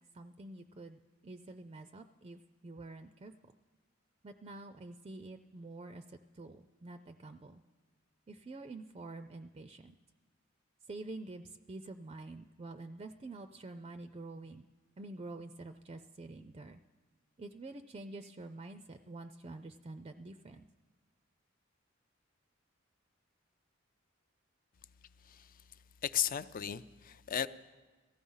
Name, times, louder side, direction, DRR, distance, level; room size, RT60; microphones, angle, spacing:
voice 1, 0.1-3.5 4.2-7.6 8.3-9.9 10.9-14.7 15.0-16.8 17.4-20.6, right 2 dB, 30° right, 9 dB, 0.4 m, -47 dB
voice 2, 25.2-25.6 26.0-27.5, left 10 dB, 45° left, 14 dB, 0.4 m, -35 dB
18.0 x 14.5 x 5.5 m, 1.3 s
head